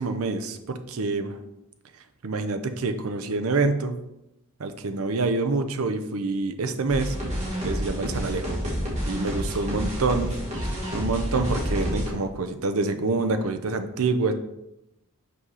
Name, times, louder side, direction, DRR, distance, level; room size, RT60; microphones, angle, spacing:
voice 1, 0.0-1.3 2.2-4.0 4.6-7.1 7.6-8.6 9.1-10.3 10.9-14.3, right 3 dB, 75° right, 8 dB, 0.6 m, -26 dB
sound 1, 6.9-12.1, equal, 30° right, 1.9 m, -29 dB
5.5 x 4.0 x 5.5 m, 0.88 s
head